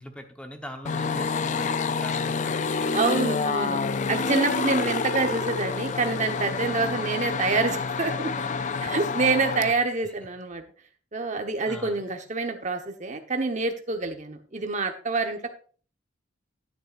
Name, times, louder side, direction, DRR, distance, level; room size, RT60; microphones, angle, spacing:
voice 1, 0.0-3.0 4.8-5.4 9.6-9.7 10.0-10.1 11.6-12.0, left 1 dB, 5° left, 5 dB, 1.0 m, -41 dB
sound 1, 0.8-9.7, left 5 dB, 40° left, 0.4 m, -28 dB
voice 2, 2.9-3.8 4.1-8.3 8.8-10.6 11.1-15.6, right 3 dB, 40° right, 5 dB, 1.1 m, -27 dB
11.0 x 9.8 x 2.5 m, 0.41 s
head